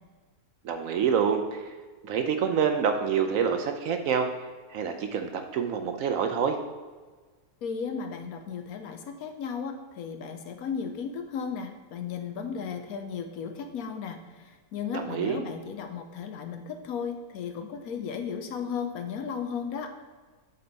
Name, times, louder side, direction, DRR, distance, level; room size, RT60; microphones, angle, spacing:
voice 1, 0.6-1.6 2.0-4.3 4.7-6.6 14.9-15.4, right 7 dB, 70° right, 6 dB, 0.9 m, -27 dB
voice 2, 7.6-19.9, left 6 dB, 70° left, 6 dB, 1.1 m, -35 dB
7.8 x 4.3 x 4.0 m, 1.4 s
omnidirectional pair, 1.7 m